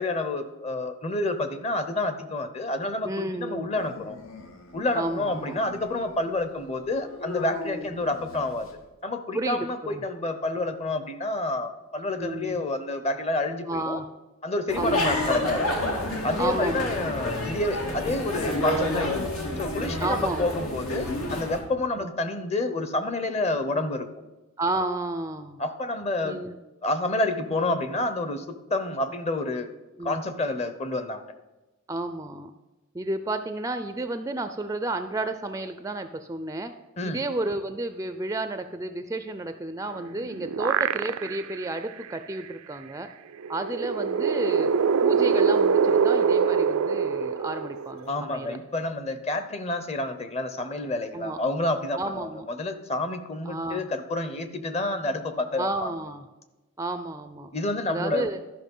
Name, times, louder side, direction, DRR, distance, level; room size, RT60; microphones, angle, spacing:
voice 1, 0.0-4.2 4.7-8.7 9.0-14.0 14.4-15.7 16.2-19.3 19.6-24.1 25.6-26.4 26.8-29.7 30.0-31.2 37.0-37.2 48.1-55.9 57.5-58.3, left 2 dB, 30° left, 10 dB, 0.7 m, -29 dB
voice 2, 3.0-3.7 5.0-5.6 9.3-10.0 12.2-12.6 13.7-14.1 14.8-14.9 16.4-17.0 20.0-20.4 22.0-22.1 23.7-23.8 24.6-25.6 26.2-26.6 30.0-30.2 31.9-32.5 32.9-36.7 37.0-43.1 43.5-44.7 45.0-48.6 51.1-51.4 52.0-52.4 53.5-53.9 55.6-56.2 56.8-57.5 57.9-58.4, right 2 dB, 15° right, 9 dB, 0.4 m, -31 dB
Dog, 3.7-8.8, left 3 dB, 70° left, 1.1 m, -41 dB
sound 1, 14.7-21.6, left 1 dB, 90° left, 2.1 m, -29 dB
sound 2, 39.9-41.6 42.0-42.1 43.4-48.2, right 6 dB, 85° right, 0.4 m, -24 dB
12.5 x 5.7 x 5.4 m, 1.1 s
head